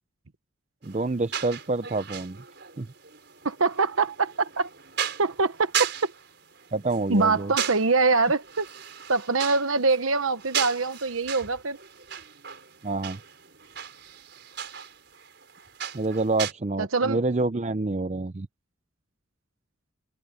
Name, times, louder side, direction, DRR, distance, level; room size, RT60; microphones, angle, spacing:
voice 1, 0.8-2.4 2.8-2.9 6.7-7.5 12.8-13.2 15.9-18.5, right 2 dB, 35° right, 0.5 m, -27 dB
sound 1, 0.8-16.5, right 9 dB, 55° right, 6.0 m, -36 dB
voice 2, 3.4-4.7 5.2-6.1 7.1-8.7 9.1-11.8 16.8-17.2, right 4 dB, 90° right, 1.2 m, -24 dB
head